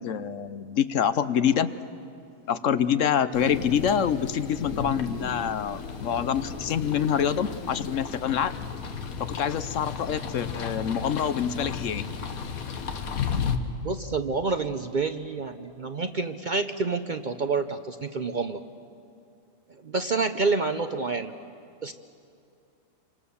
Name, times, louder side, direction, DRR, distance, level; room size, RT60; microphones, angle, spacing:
voice 1, 0.0-1.7 2.5-8.5 9.4-12.0, left 8 dB, 65° left, 13 dB, 1.1 m, -26 dB
sound 1, 3.3-13.6, left 6 dB, 85° left, 1.7 m, -34 dB
voice 2, 13.8-18.6 19.7-21.3 21.8-21.9, right 4 dB, 45° right, 9 dB, 0.7 m, -28 dB
27.5 x 25.0 x 7.1 m, 2.5 s
omnidirectional pair, 1.5 m